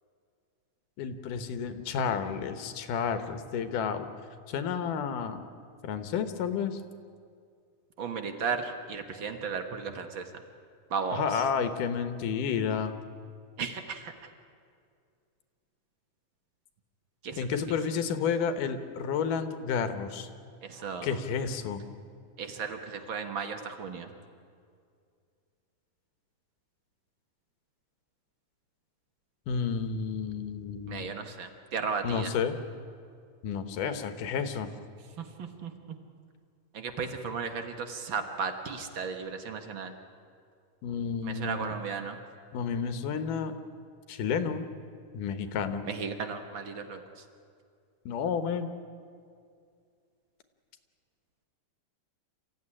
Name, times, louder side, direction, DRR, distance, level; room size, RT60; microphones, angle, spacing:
voice 1, 1.0-4.1 4.5-5.4 5.8-6.8 11.1-12.9 17.4-20.3 21.0-21.8 29.5-31.1 32.0-32.6 33.4-34.7 40.8-41.8 42.5-43.5 44.1-44.6 45.1-45.9 48.1-48.7, left 6 dB, 75° left, 10 dB, 2.7 m, -31 dB
voice 2, 8.0-10.2 10.9-11.2 13.6-14.1 17.2-17.4 20.6-21.2 22.4-24.1 30.9-32.3 35.4-35.7 36.7-39.9 41.2-42.2 45.9-47.0, right 5 dB, 50° right, 7 dB, 1.6 m, -35 dB
27.0 x 15.0 x 9.9 m, 2.3 s
omnidirectional pair, 3.8 m